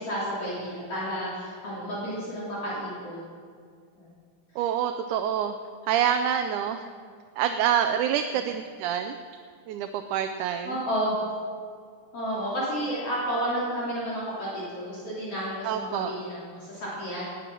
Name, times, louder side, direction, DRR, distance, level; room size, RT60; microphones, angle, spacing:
voice 1, 0.0-3.3 4.0-4.1 4.5-4.6 10.6-11.1 12.1-17.2, equal, 50° left, -8 dB, 4.0 m, -31 dB
voice 2, 4.6-5.6 5.8-6.8 7.4-9.2 9.7-10.8 15.6-16.1, right 9 dB, 85° right, 7 dB, 2.1 m, -26 dB
18.5 x 8.8 x 6.2 m, 2.1 s
omnidirectional pair, 3.5 m